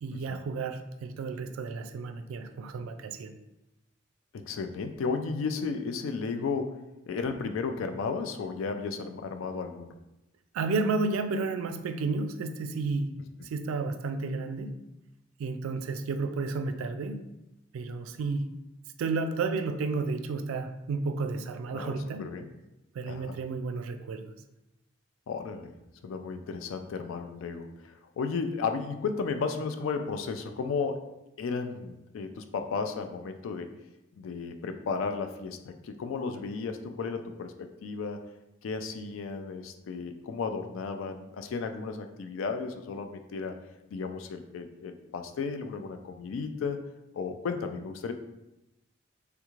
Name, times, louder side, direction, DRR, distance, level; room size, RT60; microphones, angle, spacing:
voice 1, 0.0-3.3 10.5-14.8 15.4-17.3 17.7-18.5 19.0-22.3 22.9-24.3, right 3 dB, 90° right, 9 dB, 0.3 m, -32 dB
voice 2, 4.3-6.8 7.1-9.9 21.7-21.9 22.2-22.5 23.0-23.4 25.3-25.7 26.0-31.0 31.4-33.7 34.1-38.2 38.6-43.5 43.9-46.8 47.1-48.1, left 5 dB, 80° left, 7 dB, 0.3 m, -34 dB
3.4 x 2.4 x 3.0 m, 0.92 s
head